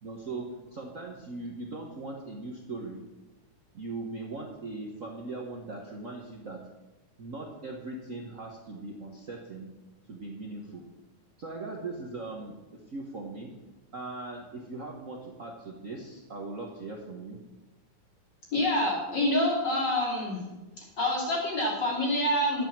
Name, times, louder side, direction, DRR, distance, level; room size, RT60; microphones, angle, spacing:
voice 1, 0.0-3.0 3.7-6.6 7.2-9.7 10.1-10.8 11.4-13.5 13.9-17.4, right 3 dB, 75° right, 0 dB, 0.7 m, -39 dB
voice 2, 18.5-20.4 21.0-22.6, left 1 dB, 35° left, -3 dB, 3.9 m, -27 dB
11.0 x 8.2 x 7.4 m, 1.1 s
omnidirectional pair, 3.4 m